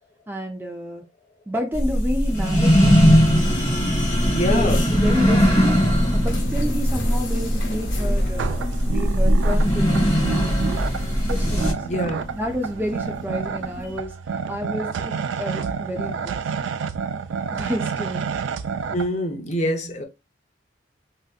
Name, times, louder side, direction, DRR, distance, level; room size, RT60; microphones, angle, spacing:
voice 1, 0.3-1.0 1.5-2.9 4.5-5.8 6.1-10.7 11.3-11.8 12.3-14.2 14.5-16.4 17.5-18.2, equal, 10° right, 0.4 m, -30 dB
sound 1, 1.7-11.7, equal, 20° left, 1.8 m, -19 dB
sound 2, 3.3-14.0, left 2 dB, 80° left, 1.1 m, -34 dB
voice 2, 4.3-4.9 11.8-12.2 18.9-20.0, left 1 dB, 40° left, 0.7 m, -25 dB
sound 3, 8.3-19.1, right 6 dB, 80° right, 0.3 m, -30 dB
3.4 x 2.7 x 2.3 m
head